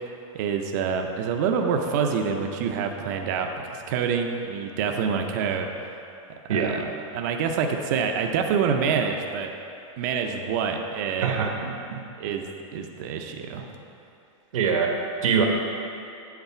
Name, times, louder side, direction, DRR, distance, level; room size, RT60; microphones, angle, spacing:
voice 1, 0.3-5.7 6.5-6.8 7.1-9.5 10.0-11.5 12.2-12.5 12.7-13.7, right 6 dB, 35° right, 4 dB, 0.5 m, -26 dB
voice 2, 6.5-6.8 11.2-12.0 14.5-15.4, right 6 dB, 85° right, 2 dB, 1.1 m, -24 dB
8.1 x 3.9 x 5.5 m, 2.7 s
supercardioid pair, 175°, 17 cm